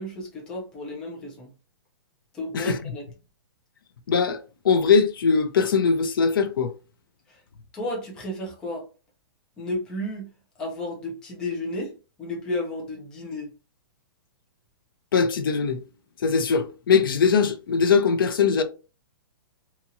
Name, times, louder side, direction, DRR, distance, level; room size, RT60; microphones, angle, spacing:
voice 1, 0.0-1.5 2.3-3.1 7.3-7.4 7.7-8.9 9.6-10.3 10.6-13.5, left 1 dB, 5° left, 0.4 m, -32 dB
voice 2, 4.1-6.7 15.1-15.8 16.2-18.6, left 5 dB, 65° left, 0.6 m, -21 dB
2.8 x 2.8 x 2.5 m
hypercardioid pair, 180°, 12 cm